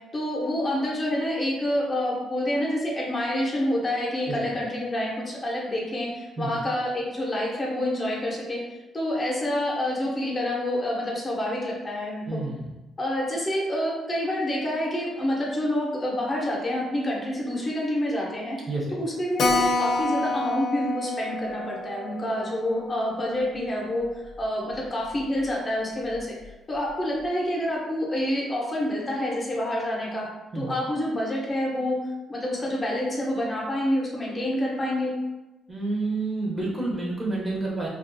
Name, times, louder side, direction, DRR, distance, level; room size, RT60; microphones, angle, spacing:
voice 1, 0.1-8.6 8.9-12.4 13.0-18.6 18.9-26.4 26.7-30.3 30.6-32.0 32.3-35.1, left 1 dB, 30° left, -3 dB, 0.7 m, -27 dB
voice 2, 12.3-12.7 18.7-19.0 30.5-30.7 35.7-37.9, right 2 dB, 25° right, -4 dB, 0.7 m, -29 dB
Keyboard (musical), 19.4-24.4 24.7-24.8 25.1-25.2 25.5-25.6 26.1-26.5, left 3 dB, 70° left, 0.3 m, -29 dB
2.4 x 2.3 x 2.6 m, 1.1 s
cardioid pair, 90°, 0 cm